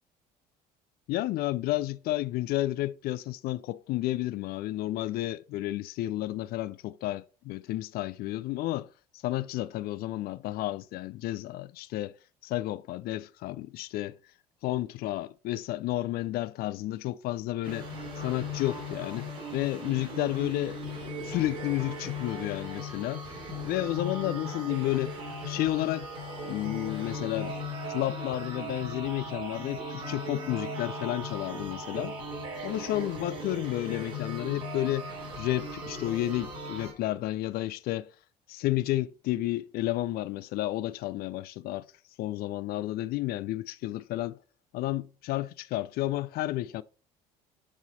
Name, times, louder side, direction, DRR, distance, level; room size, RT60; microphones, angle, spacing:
voice 1, 1.1-8.9 9.1-12.1 12.4-14.2 14.6-17.9 18.2-20.8 21.2-23.3 23.6-25.2 25.4-26.1 26.5-27.6 27.9-32.2 32.6-35.1 35.4-38.1 38.5-41.9 42.2-44.4 44.7-46.8, left 15 dB, 50° left, 0.4 m, -31 dB
sound 1, 17.6-36.9, left 1 dB, 65° right, 3.7 m, -38 dB
9.8 x 4.0 x 4.2 m
figure-of-eight pair, 55°, 20 cm